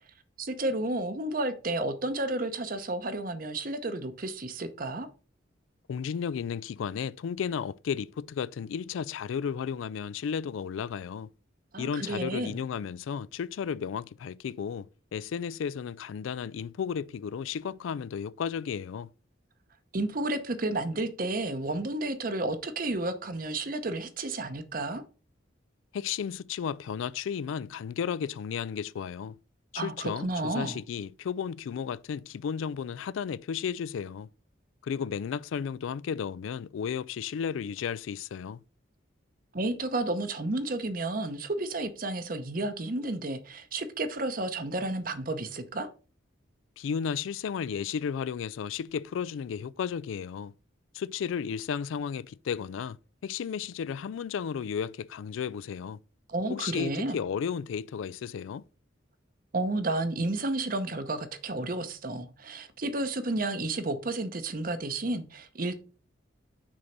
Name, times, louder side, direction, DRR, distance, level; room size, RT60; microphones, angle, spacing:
voice 1, 0.4-5.1 11.7-12.6 19.9-25.0 29.8-30.8 39.5-45.9 56.3-57.2 59.5-65.8, right 2 dB, 45° right, 0.8 m, -31 dB
voice 2, 5.9-11.3 11.8-19.1 25.9-29.4 29.7-34.3 34.8-38.6 46.8-50.5 50.9-53.0 53.2-56.0 56.5-58.6, left 7 dB, 90° left, 0.3 m, -33 dB
6.3 x 4.0 x 5.8 m
head